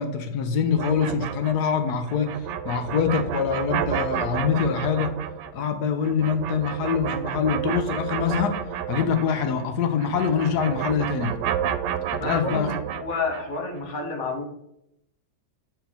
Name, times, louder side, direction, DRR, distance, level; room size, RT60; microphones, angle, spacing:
voice 1, 0.0-5.2 5.5-8.6 8.9-11.4 12.1-12.7, left 6 dB, 70° left, 7 dB, 1.2 m, -24 dB
sound 1, 0.7-9.7 9.9-13.6, right 9 dB, 85° right, 1.2 m, -31 dB
voice 2, 12.2-12.7 12.9-14.5, left 4 dB, 55° left, 2 dB, 1.6 m, -29 dB
7.9 x 4.4 x 4.2 m, 0.81 s
omnidirectional pair, 1.8 m